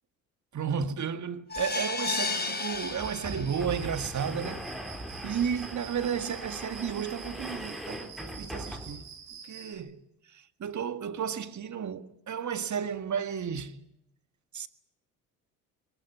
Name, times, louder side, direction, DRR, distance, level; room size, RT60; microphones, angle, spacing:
voice 1, 0.5-4.6 5.2-9.0 9.4-10.0 10.3-13.8 14.5-14.7, right 7 dB, 45° right, 1.9 m, -33 dB
sound 1, 1.5-3.8 4.2-4.3 4.7-4.8, left 4 dB, 25° left, 3.7 m, -33 dB
sound 2, 1.5-1.6 1.9-2.0 2.7-9.2, equal, ahead, 4.0 m, -41 dB
Cricket, 2.3-9.7, right 7 dB, 90° right, 5.2 m, -47 dB
22.5 x 20.0 x 9.9 m
hypercardioid pair, 60°, 40 cm